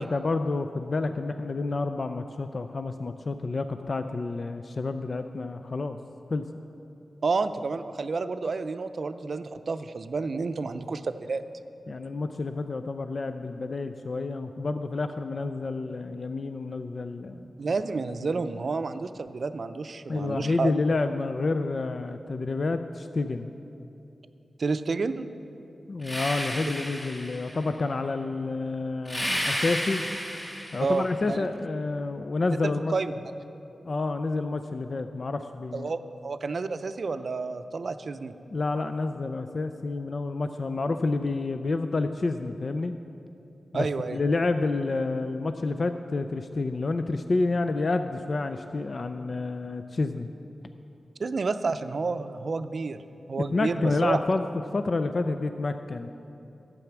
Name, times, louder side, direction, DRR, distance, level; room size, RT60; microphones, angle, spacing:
voice 1, 0.0-6.0 6.3-6.4 11.9-17.4 20.1-23.5 25.9-30.0 30.7-32.9 33.9-35.9 38.5-42.9 43.7-43.9 44.1-50.3 53.5-54.5 54.7-56.1, left 3 dB, 55° left, 8 dB, 0.4 m, -29 dB
voice 2, 7.2-11.4 17.6-20.7 24.6-25.3 30.8-31.4 32.6-33.1 35.7-38.3 43.7-44.2 51.2-53.0 53.3-54.2, right 4 dB, 65° right, 11 dB, 0.5 m, -30 dB
sound 1, 26.0-27.7 29.0-31.1, equal, 30° left, 3.3 m, -32 dB
12.0 x 8.4 x 6.0 m, 2.8 s
cardioid pair, 45°, 0 cm